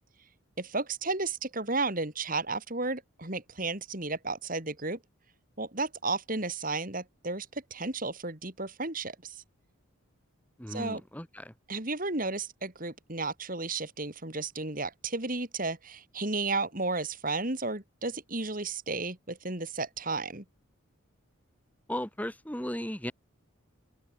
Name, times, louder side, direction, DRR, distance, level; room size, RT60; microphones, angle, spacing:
voice 1, 0.6-5.0 5.6-9.4 10.7-11.0 11.7-20.4, right 3 dB, 40° right, 3.1 m, -33 dB
voice 2, 10.6-11.5 21.9-23.1, equal, 5° left, 2.3 m, -36 dB
open air
head